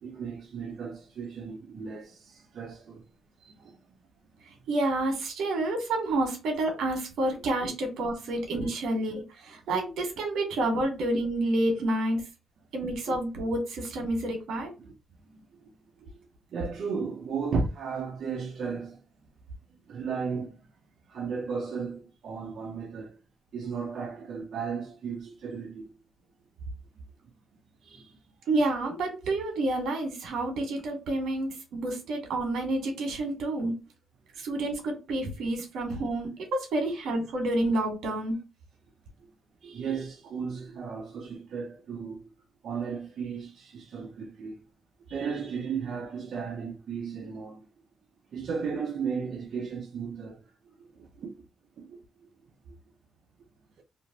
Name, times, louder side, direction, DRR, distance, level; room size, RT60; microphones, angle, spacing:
voice 1, 0.0-3.0 3.4-3.8 13.1-13.2 14.8-14.9 15.2-15.7 16.0-16.1 16.5-19.0 19.7-20.6 21.1-23.2 23.5-25.9 27.8-28.2 37.0-37.1 39.6-42.2 42.6-44.5 45.1-47.6 48.3-50.5 50.8-51.3 51.8-52.3 52.7-52.8, right 5 dB, 60° right, 0.8 m, -35 dB
voice 2, 4.7-12.2 12.7-14.7 28.5-33.7 34.4-38.4, right 2 dB, 85° right, 1.5 m, -29 dB
3.2 x 3.0 x 2.8 m
cardioid pair, 140°, 0 cm